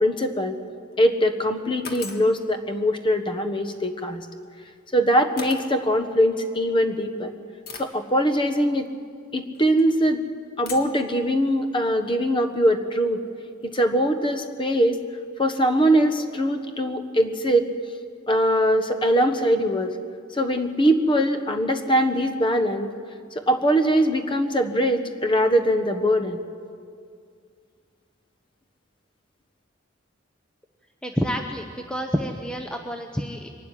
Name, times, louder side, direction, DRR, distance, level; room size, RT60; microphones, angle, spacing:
voice 1, 0.0-0.6 1.0-4.3 4.9-7.3 7.8-8.9 9.3-10.2 10.6-13.2 13.6-15.0 15.4-17.7 18.3-20.0 20.3-22.9 23.3-26.4, equal, 25° left, 7 dB, 1.3 m, -22 dB
sound 1, 0.7-1.0 1.8-2.3 4.3-4.5 5.4-5.7 6.6-6.7 7.7-8.0 9.5-9.9 10.7-11.0, left 5 dB, 50° left, 1.9 m, -39 dB
voice 2, 31.0-33.5, equal, 5° left, 3 dB, 0.8 m, -28 dB
23.5 x 12.0 x 9.8 m, 2.2 s
head